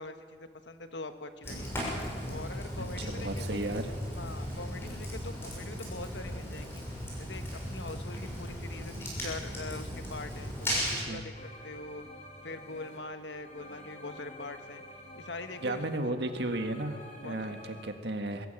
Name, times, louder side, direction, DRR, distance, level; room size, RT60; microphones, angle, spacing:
voice 1, 0.0-1.8 2.3-3.6 4.1-6.8 7.2-11.3 11.6-12.1 12.4-14.8 15.2-16.1 17.2-17.6, left 3 dB, 85° left, 8 dB, 1.4 m, -43 dB
Fire, 1.4-11.0, equal, 15° left, 6.6 m, -37 dB
voice 2, 2.8-3.9 10.8-11.3 15.6-18.5, right 1 dB, 70° right, 7 dB, 1.7 m, -34 dB
sound 1, 11.3-17.9, left 1 dB, 40° left, 3.4 m, -49 dB
22.5 x 14.5 x 8.9 m, 2.1 s
head